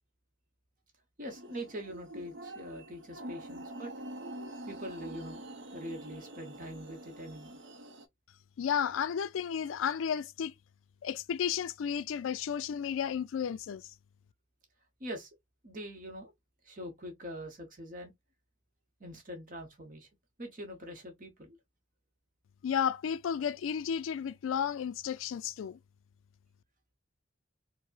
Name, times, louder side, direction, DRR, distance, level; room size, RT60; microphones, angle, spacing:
voice 1, 1.2-3.9 4.6-5.5 5.7-7.6 15.0-15.3 15.6-16.3 16.6-18.1 19.0-20.1 20.4-21.6, equal, 40° right, 0.9 m, -43 dB
sound 1, 1.3-8.1, right 1 dB, 65° right, 0.6 m, -45 dB
voice 2, 8.6-10.5 11.0-13.8 22.6-25.8, left 8 dB, 85° left, 0.3 m, -33 dB
4.8 x 2.0 x 2.4 m
head